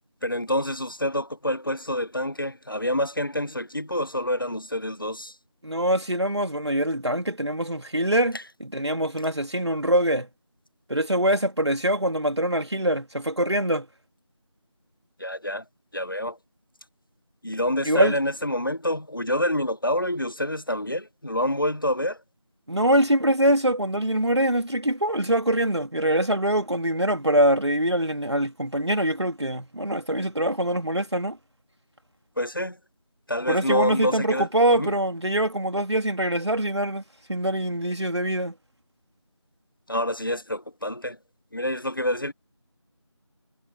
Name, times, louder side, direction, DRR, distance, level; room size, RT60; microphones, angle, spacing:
voice 1, 0.2-5.4 8.3-8.4 15.2-15.6 15.9-16.4 17.4-22.2 32.4-32.8 33.3-34.9 39.9-41.2 41.5-42.3, left 1 dB, 45° left, 0.9 m, -27 dB
voice 2, 5.6-10.3 10.9-13.9 17.8-18.2 22.7-31.4 33.5-37.0 37.3-38.5, right 1 dB, 65° right, 3.2 m, -24 dB
figure-of-eight pair, 175°, 15 cm